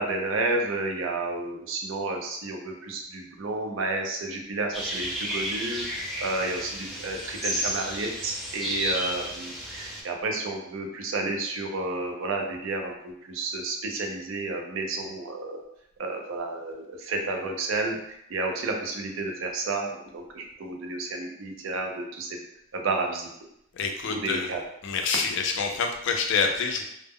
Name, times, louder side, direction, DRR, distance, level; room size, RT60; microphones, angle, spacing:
voice 1, 0.0-15.6 16.0-22.3 22.7-23.3 24.1-24.6, right 2 dB, 65° right, 2 dB, 0.4 m, -31 dB
sound 1, 4.7-10.0, equal, ahead, 0.6 m, -32 dB
voice 2, 23.8-24.5 24.8-26.8, left 5 dB, 60° left, 4 dB, 0.4 m, -27 dB
2.0 x 2.0 x 3.5 m, 0.77 s
head